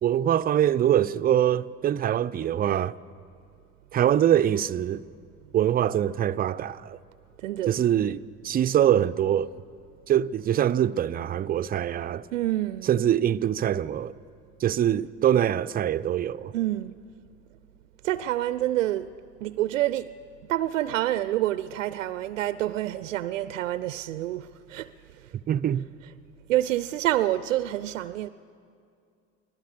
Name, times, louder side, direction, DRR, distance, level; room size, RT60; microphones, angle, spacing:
voice 1, 0.0-2.9 3.9-5.0 5.5-7.0 7.7-9.5 10.1-12.2 12.8-14.1 14.6-16.5 25.5-25.9, right 10 dB, 25° right, 0.4 m, -24 dB
voice 2, 7.4-7.7 12.3-12.9 16.5-17.0 18.0-19.1 19.4-20.1 20.5-24.9 26.5-28.3, right 14 dB, 80° right, 0.5 m, -27 dB
24.0 x 17.0 x 6.8 m
figure-of-eight pair, 55°, 38 cm